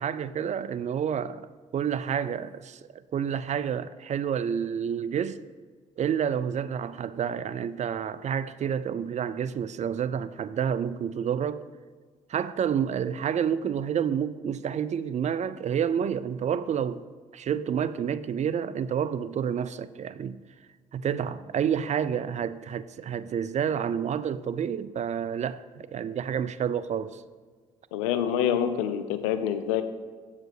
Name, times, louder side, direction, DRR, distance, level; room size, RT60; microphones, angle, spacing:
voice 1, 0.0-1.5 1.7-5.4 6.0-11.6 12.3-17.0 17.3-20.4 20.9-27.2, right 8 dB, 45° right, 0.4 m, -29 dB
voice 2, 27.9-29.8, left 9 dB, 90° left, 0.5 m, -26 dB
7.5 x 4.8 x 4.9 m
hypercardioid pair, 55°, 17 cm